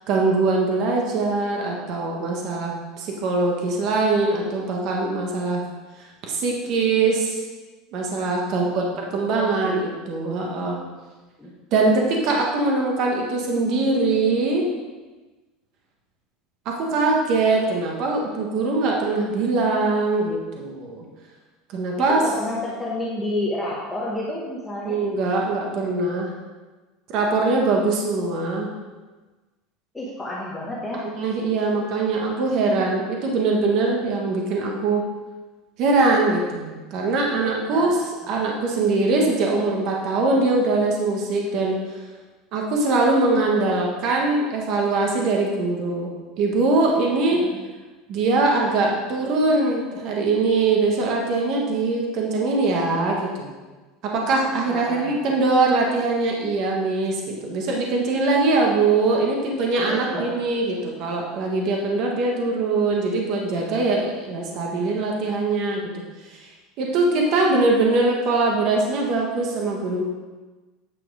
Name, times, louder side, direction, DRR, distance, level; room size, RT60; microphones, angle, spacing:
voice 1, 0.1-5.6 6.0-7.4 7.9-8.8 9.1-10.8 11.7-14.7 16.6-21.0 21.7-22.2 24.9-26.3 27.1-28.7 31.0-35.1 35.8-38.0 38.3-41.8 42.5-46.1 46.4-47.4 48.1-53.5 54.0-65.8 66.3-66.5 66.8-70.0, right 3 dB, 45° right, 0 dB, 1.4 m, -22 dB
voice 2, 8.5-9.0 9.3-9.9 11.4-11.8 22.1-25.0 29.9-31.1 37.7-38.1 47.3-47.4 54.7-55.3 59.9-60.3 67.4-67.5, left 1 dB, 5° left, -6 dB, 1.1 m, -30 dB
9.0 x 5.8 x 4.8 m, 1.3 s
cardioid pair, 165°, 0 cm